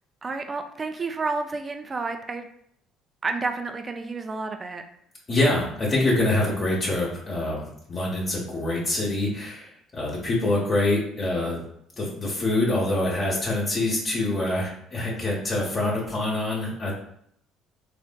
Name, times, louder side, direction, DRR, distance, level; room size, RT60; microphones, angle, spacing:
voice 1, 0.2-2.4 3.2-4.8, right 3 dB, 35° right, 6 dB, 0.4 m, -30 dB
voice 2, 5.3-11.6 12.0-17.0, left 2 dB, 40° left, -4 dB, 1.0 m, -25 dB
3.2 x 2.6 x 2.2 m, 0.70 s
hypercardioid pair, 60°, 0 cm